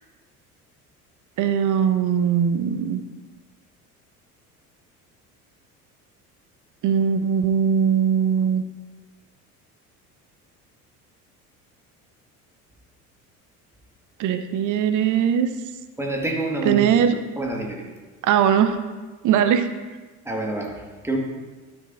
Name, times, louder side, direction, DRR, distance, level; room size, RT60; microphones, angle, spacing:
voice 1, 1.4-3.0 6.8-8.6 14.2-15.5 16.6-17.2 18.2-18.8 19.2-19.7, right 8 dB, 40° right, 9 dB, 0.9 m, -20 dB
voice 2, 16.0-16.8 17.4-17.8 20.2-21.2, right 2 dB, 5° right, 0 dB, 1.7 m, -27 dB
12.5 x 9.8 x 2.6 m, 1.3 s
figure-of-eight pair, 60°, 45 cm